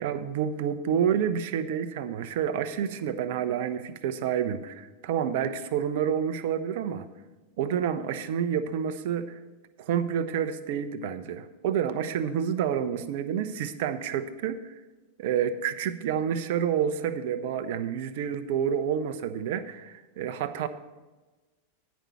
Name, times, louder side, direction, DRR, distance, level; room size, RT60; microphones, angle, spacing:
voice 1, 0.0-7.1 7.6-9.4 9.8-14.7 15.2-20.7, right 8 dB, 50° right, 12 dB, 0.6 m, -29 dB
10.0 x 5.2 x 7.0 m, 1.2 s
figure-of-eight pair, 90°, 0 cm